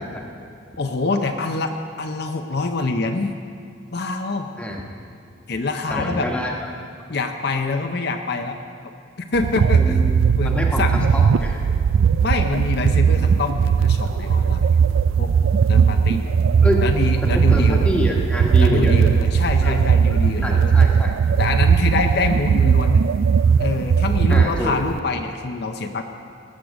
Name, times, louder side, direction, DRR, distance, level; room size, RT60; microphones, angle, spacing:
voice 1, 0.8-3.3 3.9-4.5 5.5-6.3 7.1-8.6 9.3-9.9 10.4-11.1 12.2-14.7 15.2-15.3 15.7-16.3 16.8-17.9 18.6-20.7 21.4-23.0 23.6-26.0, left 3 dB, 55° left, 5 dB, 0.6 m, -25 dB
voice 2, 5.9-6.5 9.8-10.2 10.4-10.8 11.1-11.6 16.6-16.8 17.2-19.1 19.6-19.7 20.4-21.1 24.3-24.8, equal, 5° left, -1 dB, 1.2 m, -26 dB
sound 1, 9.3-25.0, right 6 dB, 90° right, 0.3 m, -18 dB
19.5 x 6.4 x 6.3 m, 2.5 s
head